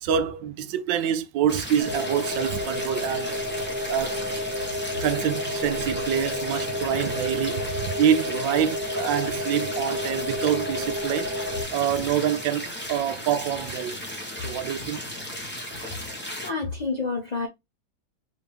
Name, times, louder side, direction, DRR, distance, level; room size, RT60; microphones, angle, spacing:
voice 1, 0.0-3.4 3.9-4.2 5.0-11.3 11.7-14.0 14.4-15.1, right 9 dB, 75° right, 1.2 m, -26 dB
sound 1, 1.5-16.5, equal, 10° left, 0.8 m, -35 dB
sound 2, 1.8-11.6, left 1 dB, 55° right, 1.5 m, -31 dB
voice 2, 16.4-17.5, left 4 dB, 65° left, 0.4 m, -28 dB
4.9 x 2.8 x 3.4 m
omnidirectional pair, 2.1 m